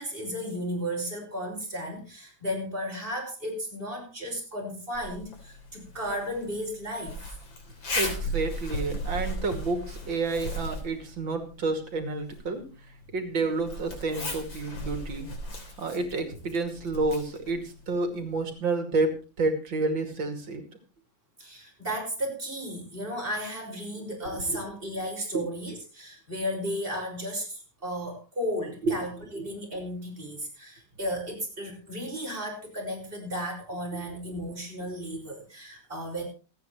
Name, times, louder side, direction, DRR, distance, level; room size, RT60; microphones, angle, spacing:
voice 1, 0.0-7.4 21.4-36.2, equal, 30° right, -1 dB, 6.1 m, -34 dB
Zipper (clothing), 4.9-18.5, left 1 dB, 90° left, 4.3 m, -37 dB
voice 2, 7.9-12.6 13.1-15.3 15.8-20.6 24.3-24.6 28.8-28.9 29.3-29.4 33.9-34.0, right 3 dB, 85° right, 5 dB, 3.2 m, -30 dB
27.5 x 9.4 x 3.1 m, 0.33 s
omnidirectional pair, 2.0 m